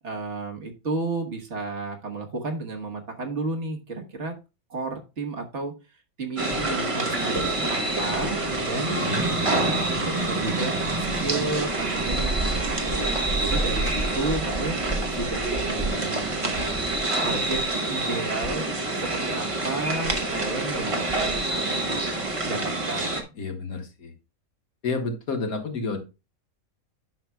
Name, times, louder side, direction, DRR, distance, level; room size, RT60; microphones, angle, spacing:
voice 1, 0.0-4.3 4.7-5.7 6.2-9.0 9.6-14.8 15.1-16.9 17.2-18.7 18.9-22.0 22.4-23.2, right 3 dB, 55° right, 2 dB, 1.5 m, -32 dB
sound 1, 6.4-23.2, right 2 dB, 25° right, 0.8 m, -26 dB
voice 2, 8.9-9.3 23.4-24.1 24.8-26.0, left 3 dB, 80° left, 4 dB, 1.8 m, -30 dB
10.5 x 5.9 x 2.2 m, 0.28 s
omnidirectional pair, 1.5 m